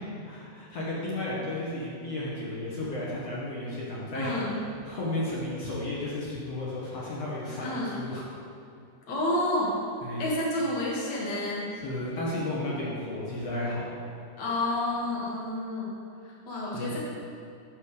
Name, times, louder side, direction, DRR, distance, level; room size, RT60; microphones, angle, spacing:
voice 1, 0.2-4.3 4.8-8.2 10.0-10.2 11.8-13.8 16.7-16.9, left 1 dB, 65° left, -6 dB, 1.6 m, -33 dB
voice 2, 4.1-4.6 7.6-7.9 9.1-9.7 10.2-11.7 14.4-15.9 16.2-17.0, left 1 dB, 85° left, -5 dB, 0.9 m, -29 dB
8.2 x 5.4 x 6.6 m, 2.6 s
omnidirectional pair, 4.9 m